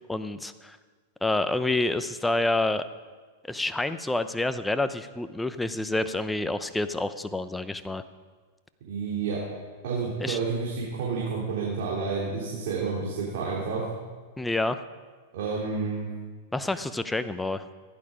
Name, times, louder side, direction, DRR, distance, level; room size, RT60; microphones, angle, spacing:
voice 1, 0.1-0.8 1.2-2.8 3.5-8.0 10.2-10.4 14.4-14.8 16.5-17.6, left 2 dB, 5° left, 11 dB, 0.7 m, -28 dB
voice 2, 8.9-9.4 9.8-13.8 15.3-16.1, right 5 dB, 65° right, -4 dB, 3.3 m, -30 dB
15.5 x 11.0 x 5.1 m, 1.4 s
hypercardioid pair, 120°, 0 cm